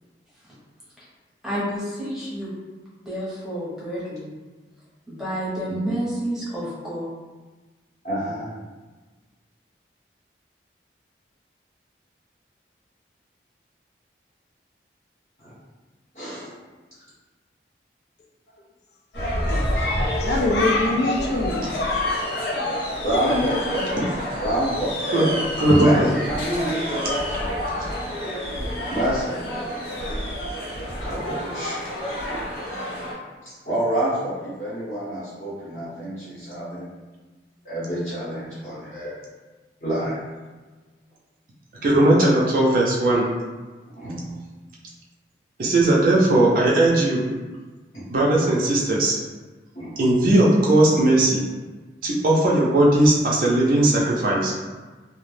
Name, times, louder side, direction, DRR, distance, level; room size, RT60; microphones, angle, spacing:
voice 1, 1.4-2.5 3.0-4.3 5.1-7.1, equal, 5° right, -9 dB, 0.7 m, -29 dB
voice 2, 5.7-6.0 8.0-8.5 15.4-15.5 16.1-16.5 23.0-23.6 24.3-25.3 25.7-27.3 28.9-29.4 31.0-32.5 33.4-36.9 37.6-39.2 39.8-40.2 44.0-44.3 47.9-48.0 49.7-50.0, right 1 dB, 40° left, -10 dB, 0.7 m, -28 dB
sound 1, 19.1-33.1, equal, 85° left, 0.8 m, -29 dB
voice 3, 19.5-22.7 23.1-23.9 25.7-25.9, left 2 dB, 70° left, 1 dB, 0.4 m, -24 dB
voice 4, 25.6-26.1 41.8-43.3 45.6-47.2 48.1-49.2 50.0-51.4 52.0-54.5, right 1 dB, 50° right, -4 dB, 0.4 m, -18 dB
2.2 x 2.0 x 3.1 m, 1.3 s
head